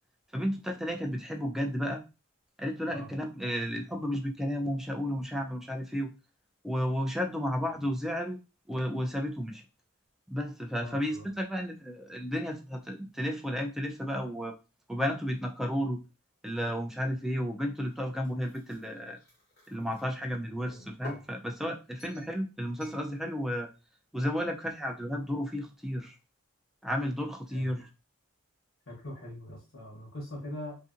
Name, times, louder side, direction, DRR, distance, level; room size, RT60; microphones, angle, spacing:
voice 1, 0.3-2.0 2.6-6.1 6.6-8.4 8.7-9.6 10.3-14.5 14.9-16.0 16.4-19.2 19.7-23.7 24.1-26.2 26.8-27.9, equal, ahead, 2 dB, 0.3 m, -32 dB
voice 2, 10.7-11.3 27.5-27.7 28.9-30.8, left 1 dB, 70° left, -5 dB, 1.0 m, -42 dB
sound 1, 17.8-20.0 20.6-21.3 22.0-22.3 22.8-23.0, left 1 dB, 45° left, 1.2 m, -51 dB
2.7 x 2.5 x 2.5 m, 0.30 s
head